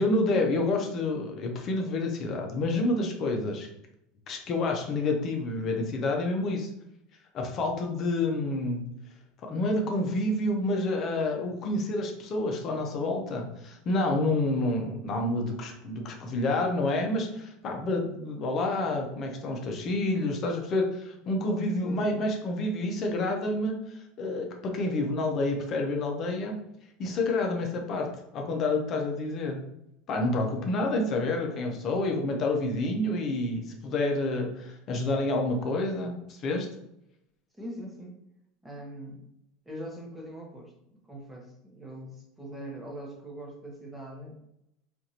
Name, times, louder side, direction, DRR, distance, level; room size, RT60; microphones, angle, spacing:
voice 1, 0.0-3.7 4.3-6.7 7.3-8.8 9.4-26.5 27.0-28.1 28.3-29.6 30.1-36.7, left 2 dB, 40° left, 2 dB, 0.7 m, -28 dB
voice 2, 21.8-22.2 37.6-38.2 38.6-39.2 39.6-40.7 41.1-44.4, equal, 5° right, -2 dB, 1.0 m, -42 dB
4.6 x 2.5 x 2.8 m, 0.80 s
supercardioid pair, 135°, 0 cm